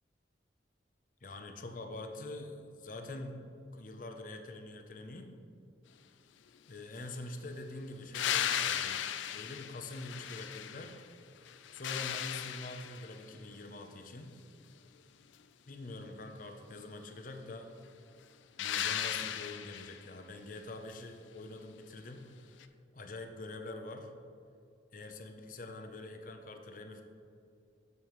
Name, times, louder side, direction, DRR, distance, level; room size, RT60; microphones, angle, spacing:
voice 1, 1.2-3.4 3.7-5.3 6.7-9.0 9.3-11.0 11.7-14.3 15.7-17.7 18.6-22.5 22.9-24.1 24.9-27.0, left 2 dB, 45° left, 5 dB, 0.6 m, -45 dB
sound 1, 8.1-11.1 11.5-13.2 18.6-20.0 22.6-22.7, left 10 dB, 90° left, 0.4 m, -36 dB
8.2 x 7.5 x 3.1 m, 2.5 s
head